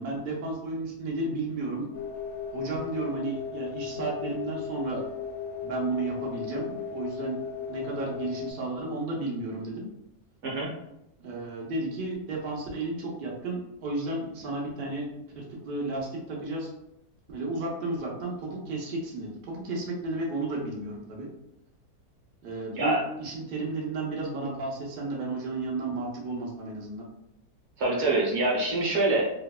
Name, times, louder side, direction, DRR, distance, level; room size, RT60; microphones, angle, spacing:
voice 1, 0.0-1.9 2.5-5.0 5.6-7.4 7.7-9.9 11.2-15.1 15.3-16.7 17.3-21.3 22.4-27.0, right 2 dB, 80° right, -3 dB, 0.4 m, -33 dB
sound 1, 1.9-8.5, left 6 dB, 70° left, 1.0 m, -36 dB
voice 2, 27.8-29.3, right 2 dB, 55° right, -3 dB, 0.8 m, -25 dB
2.7 x 2.1 x 2.3 m, 0.84 s
omnidirectional pair, 1.6 m